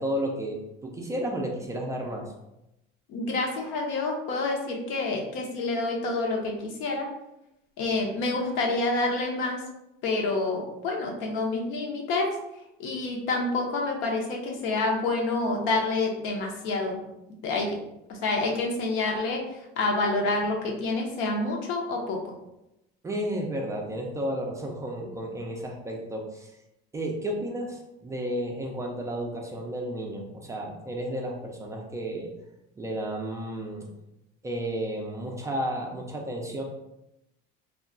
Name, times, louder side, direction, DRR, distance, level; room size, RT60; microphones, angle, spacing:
voice 1, 0.0-2.3 23.0-26.5 26.9-32.3 32.8-33.9 34.4-36.6, right 1 dB, 15° right, 0 dB, 0.3 m, -32 dB
voice 2, 3.1-7.1 7.8-9.6 10.0-12.3 12.8-17.0 17.4-17.8 18.1-19.4 19.8-22.2, left 2 dB, 70° left, 1 dB, 0.7 m, -28 dB
2.3 x 2.2 x 3.7 m, 0.89 s
cardioid pair, 140°, 21 cm